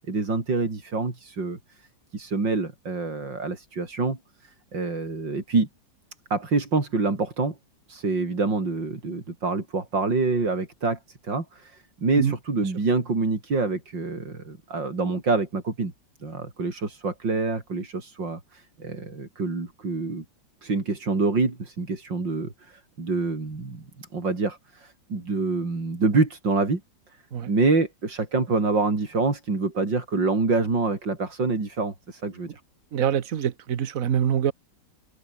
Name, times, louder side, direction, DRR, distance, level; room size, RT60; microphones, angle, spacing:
voice 1, 0.0-5.7 6.3-7.6 7.9-15.9 16.2-20.2 20.6-26.8 27.5-32.6, right 3 dB, 90° right, 5.1 m, -26 dB
voice 2, 32.9-34.5, right 9 dB, 55° right, 1.4 m, -24 dB
omnidirectional pair, 1.9 m